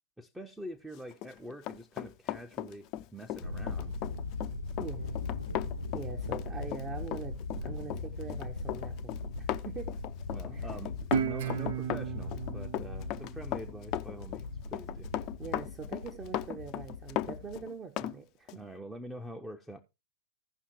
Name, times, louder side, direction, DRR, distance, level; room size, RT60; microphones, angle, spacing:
voice 1, 0.2-2.9 3.1-4.0 10.3-15.1 18.5-19.8, right 1 dB, 5° right, 0.7 m, -45 dB
Run, 1.1-18.2 18.5-18.6, left 13 dB, 40° left, 0.5 m, -37 dB
Thunder, 3.4-17.6, left 3 dB, 85° left, 0.8 m, -39 dB
voice 2, 4.8-5.2 5.9-9.9 10.5-10.7 15.4-18.6, right 5 dB, 25° right, 1.0 m, -43 dB
Guitar, 11.1-14.3, right 8 dB, 55° right, 0.6 m, -35 dB
16.5 x 5.7 x 3.1 m
figure-of-eight pair, 90°, 0 cm